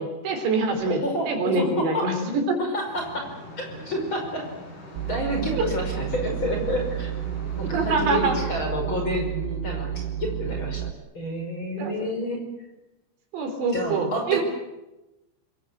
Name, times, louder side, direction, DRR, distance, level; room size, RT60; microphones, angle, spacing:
voice 1, 0.0-1.0 1.3-2.6 5.5-5.7 7.7-8.4 11.8-11.9 13.3-14.4, right 3 dB, 70° right, 5 dB, 5.8 m, -25 dB
voice 2, 0.8-2.1 2.6-3.3 3.6-4.5 5.1-7.1 7.6-10.9 11.1-12.4 13.7-14.4, equal, 25° left, 2 dB, 5.9 m, -29 dB
sound 1, 2.9-8.4, left 1 dB, 45° left, 8.1 m, -42 dB
sound 2, 5.0-10.9, right 10 dB, 90° right, 3.4 m, -31 dB
27.0 x 21.5 x 7.9 m, 0.98 s
omnidirectional pair, 5.2 m